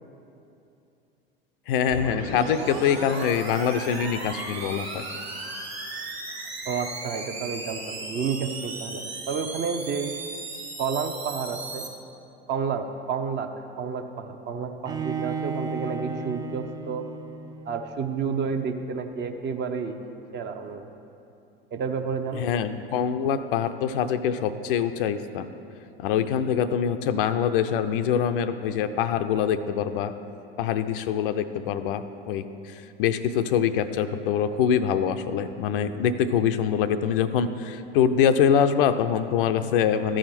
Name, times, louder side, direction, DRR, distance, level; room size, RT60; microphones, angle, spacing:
voice 1, 1.7-5.0 22.4-25.5 26.0-30.1 30.6-40.2, left 8 dB, 65° left, 10 dB, 0.5 m, -24 dB
sound 1, 1.9-11.9, right 2 dB, 80° right, 1.6 m, -36 dB
voice 2, 6.7-10.2 10.8-11.9 12.5-13.5 13.8-17.1 17.7-20.0 20.3-20.9 21.7-22.4, right 6 dB, 35° right, 6 dB, 0.8 m, -30 dB
Bowed string instrument, 14.8-17.8, right 5 dB, 15° right, 0.4 m, -33 dB
13.5 x 5.0 x 5.9 m, 2.7 s
figure-of-eight pair, 75°, 30 cm